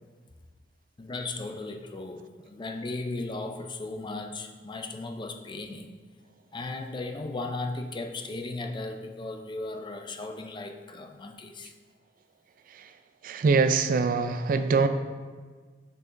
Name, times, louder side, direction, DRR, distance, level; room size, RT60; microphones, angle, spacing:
voice 1, 1.0-5.9 6.5-11.7, left 2 dB, 25° left, 5 dB, 0.5 m, -36 dB
voice 2, 13.2-14.9, right 4 dB, 50° right, 10 dB, 0.3 m, -23 dB
8.4 x 6.6 x 2.6 m, 1.5 s
head